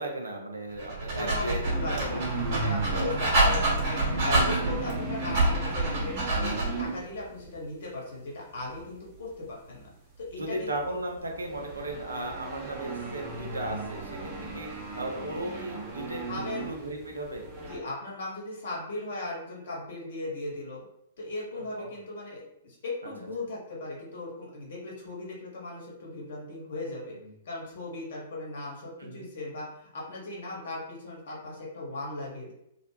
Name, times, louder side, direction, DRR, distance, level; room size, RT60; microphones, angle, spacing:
voice 1, 0.0-1.6 1.9-2.2 2.9-3.5 10.4-17.4 21.8-21.9 29.0-29.3, right 1 dB, 75° right, 1 dB, 0.5 m, -36 dB
Dog, 0.8-6.9, right 2 dB, 50° right, 1.1 m, -27 dB
voice 2, 1.1-9.9 10.2-10.7 16.3-16.7 17.6-20.9 21.2-27.2 27.4-32.5, left 2 dB, 60° left, -4 dB, 1.0 m, -38 dB
sound 1, 1.6-7.7 8.6-17.8, right 3 dB, 25° right, 0.7 m, -37 dB
2.3 x 2.1 x 3.0 m, 0.79 s
figure-of-eight pair, 110°, 0 cm